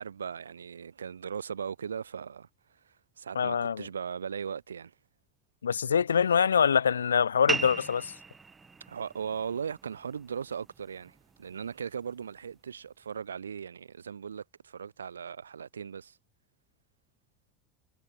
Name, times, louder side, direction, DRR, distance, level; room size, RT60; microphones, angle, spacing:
voice 1, 0.0-2.5 2.9-4.9 8.9-16.2, right 7 dB, 90° right, 1.0 m, -38 dB
voice 2, 3.4-3.9 5.6-8.1, left 7 dB, 90° left, 0.3 m, -24 dB
sound 1, 7.5-12.5, right 4 dB, 20° right, 0.7 m, -39 dB
hypercardioid pair, 80°, 0 cm